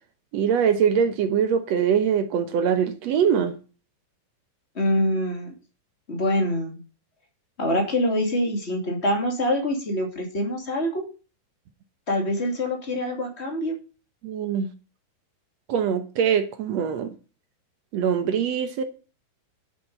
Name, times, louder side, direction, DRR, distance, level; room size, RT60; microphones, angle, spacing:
voice 1, 0.3-3.5 14.2-14.7 15.7-17.1 17.9-18.8, right 7 dB, 65° right, 1.9 m, -23 dB
voice 2, 4.7-5.5 6.1-6.8 7.6-11.1 12.1-13.8, left 1 dB, 20° left, 2.4 m, -25 dB
11.0 x 7.5 x 5.3 m
omnidirectional pair, 3.9 m